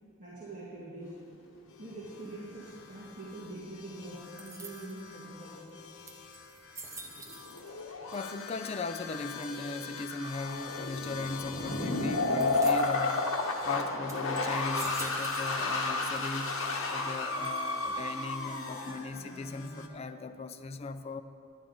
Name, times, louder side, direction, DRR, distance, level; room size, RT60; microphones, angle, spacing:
voice 1, 0.2-1.1 1.8-5.8, right 2 dB, 35° right, -8 dB, 1.8 m, -44 dB
sound 1, 1.1-1.3 1.8-1.9 7.2-20.0, left 2 dB, 65° left, 1.1 m, -33 dB
sound 2, 1.7-19.9, left 6 dB, 85° left, 0.8 m, -47 dB
sound 3, 4.4-5.1 5.7-5.8 6.1-7.8 8.1-8.7 9.4-9.9 12.4-13.1 13.6-13.7 14.1-15.8 16.1-16.7 17.4-18.0, right 3 dB, 15° right, 0.7 m, -47 dB
voice 2, 8.1-13.4 13.6-16.6 16.9-21.2, left 3 dB, 30° left, 10 dB, 0.3 m, -38 dB
11.0 x 10.0 x 3.9 m, 2.5 s
head